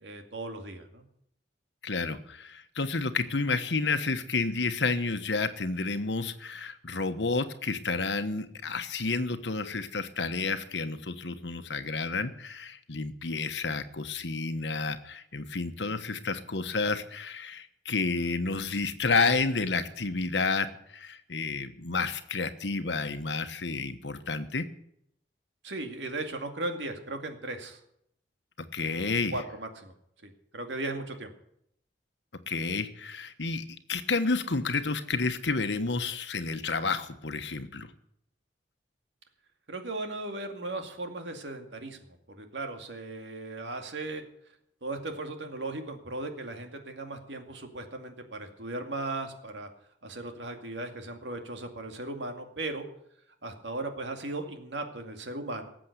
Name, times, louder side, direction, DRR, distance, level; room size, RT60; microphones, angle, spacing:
voice 1, 0.0-1.0 25.6-27.8 28.8-29.9 30.2-31.3 39.7-42.0 42.3-44.2 44.8-49.7 50.0-52.9 53.4-55.7, right 2 dB, 85° right, 5 dB, 2.3 m, -37 dB
voice 2, 1.8-24.7 28.7-29.4 32.5-37.9, left 4 dB, 80° left, 9 dB, 1.2 m, -30 dB
18.5 x 7.7 x 8.2 m, 0.73 s
head